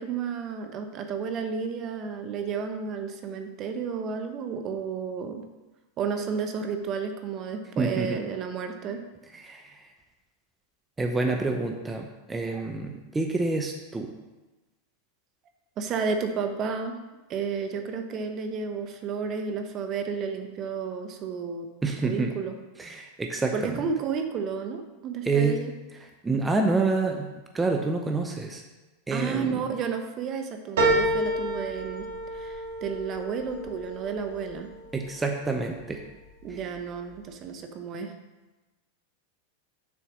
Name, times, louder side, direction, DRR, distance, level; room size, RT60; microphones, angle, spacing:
voice 1, 0.0-5.4 6.0-9.0 12.5-12.6 15.8-17.0 17.3-21.7 22.0-22.5 23.5-25.7 29.1-32.0 32.3-34.7 36.4-38.1, right 6 dB, 40° right, 6 dB, 0.9 m, -32 dB
voice 2, 7.8-8.2 9.3-9.7 11.0-14.1 21.8-22.3 22.8-23.8 25.2-25.6 26.2-27.3 27.5-28.6 29.1-29.6 34.9-36.0, right 3 dB, 15° right, 3 dB, 0.7 m, -27 dB
sound 1, 30.8-35.5 36.0-36.7 37.1-37.2, right 1 dB, 80° right, 2.3 m, -29 dB
7.1 x 4.4 x 6.2 m, 1.1 s
hypercardioid pair, 115°, 0 cm